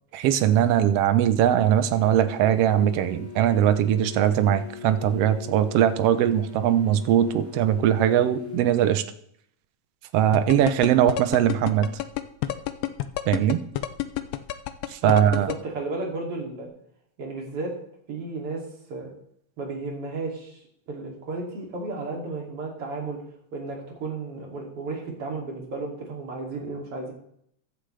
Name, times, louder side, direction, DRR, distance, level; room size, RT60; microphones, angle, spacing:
voice 1, 0.1-9.0 10.1-12.0 13.3-13.6 14.9-15.5, right 10 dB, 70° right, 11 dB, 1.5 m, -21 dB
sound 1, 1.7-8.6, left 7 dB, 5° left, 1.8 m, -41 dB
sound 2, 10.3-15.5, left 14 dB, 75° left, 1.6 m, -28 dB
voice 2, 15.0-16.7 17.2-17.7 18.1-18.6 18.9-19.1 19.6-20.6 20.9-23.2 23.5-27.1, right 3 dB, 50° right, 0 dB, 3.5 m, -33 dB
15.0 x 11.5 x 3.3 m, 0.69 s
omnidirectional pair, 3.4 m